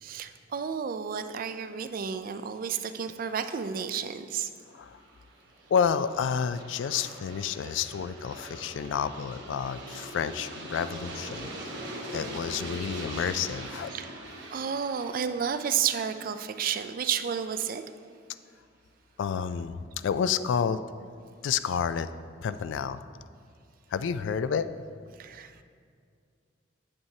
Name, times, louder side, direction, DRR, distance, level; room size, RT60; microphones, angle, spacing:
voice 1, 0.0-4.5 7.6-7.7 13.9-14.1 14.5-17.8 25.2-25.6, right 7 dB, 50° right, 10 dB, 0.3 m, -31 dB
voice 2, 4.7-5.0 5.7-11.7 12.1-13.9 19.2-20.8 21.4-22.1 22.4-23.0 23.9-24.7, left 7 dB, 75° left, 13 dB, 0.3 m, -30 dB
Aircraft, 4.8-17.6, right 1 dB, 65° right, 1.2 m, -43 dB
8.7 x 7.7 x 2.8 m, 2.2 s
head